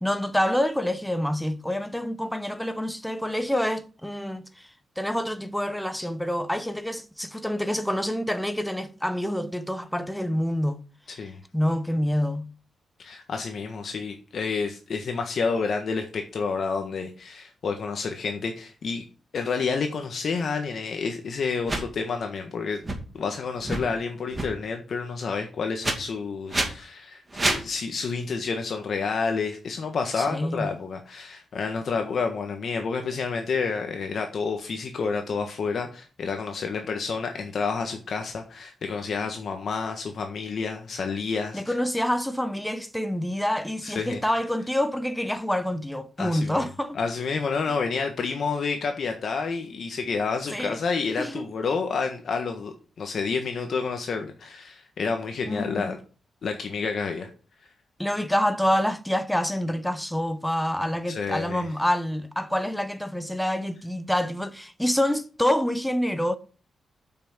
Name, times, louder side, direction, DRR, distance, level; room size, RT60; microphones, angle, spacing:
voice 1, 0.0-4.7 5.0-10.8 11.5-12.5 30.2-30.7 41.5-47.0 50.5-50.8 51.2-51.5 55.5-55.9 58.0-66.4, equal, 5° left, 0.9 m, -27 dB
voice 2, 13.0-19.0 19.3-22.8 23.1-41.7 43.8-44.2 46.2-46.7 46.9-56.0 56.4-57.3 61.1-61.7, left 5 dB, 60° left, 1.5 m, -29 dB
sound 1, 21.6-21.8 22.8-23.0 23.6-23.8 24.3-24.5 25.8-25.9 26.5-26.7 27.3-27.6, right 2 dB, 20° right, 2.4 m, -26 dB
8.4 x 6.1 x 7.4 m
cardioid pair, 115°, 0 cm